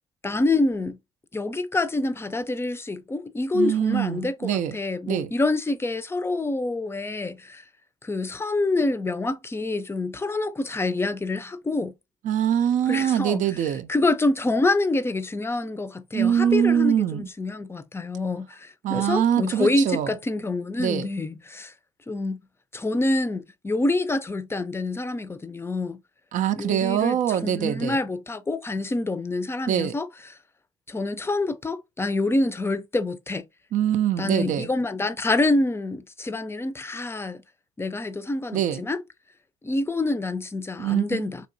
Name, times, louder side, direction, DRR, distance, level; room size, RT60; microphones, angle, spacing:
voice 1, 0.2-1.0 1.3-7.6 8.0-11.9 12.9-13.4 13.9-21.7 22.1-22.4 22.7-26.0 26.6-30.1 30.9-33.5 34.2-37.4 37.8-39.0 39.6-41.4, left 2 dB, 15° left, 0.5 m, -26 dB
voice 2, 3.5-4.8 5.1-5.3 12.2-13.9 16.1-17.3 18.8-20.1 20.8-21.1 26.3-28.0 29.7-29.9 33.7-34.7 38.5-38.8 40.8-41.3, right 10 dB, 60° right, 0.5 m, -23 dB
3.8 x 2.9 x 2.6 m
supercardioid pair, 70°, 15 cm